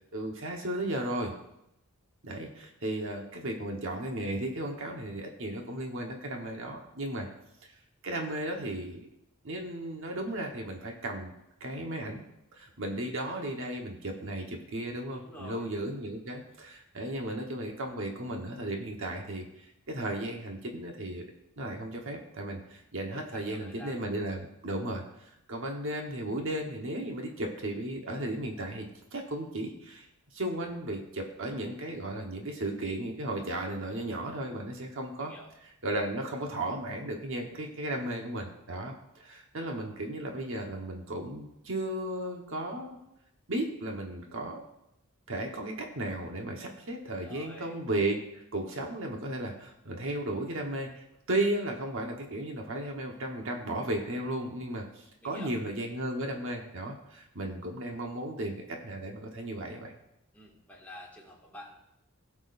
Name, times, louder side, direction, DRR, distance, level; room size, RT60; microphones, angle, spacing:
voice 1, 0.1-1.3 2.2-7.3 8.0-9.0 9.4-11.3 11.6-12.2 12.6-19.4 19.9-21.2 21.6-30.1 30.3-35.3 35.8-43.0 43.5-44.6 45.3-59.9, right 1 dB, 60° right, 2 dB, 1.2 m, -35 dB
voice 2, 15.1-15.7 22.6-22.8 23.1-24.0 35.2-35.5 47.1-47.8 55.2-55.6 60.3-61.8, left 1 dB, 10° left, -4 dB, 2.0 m, -48 dB
17.5 x 6.2 x 2.6 m, 0.82 s
head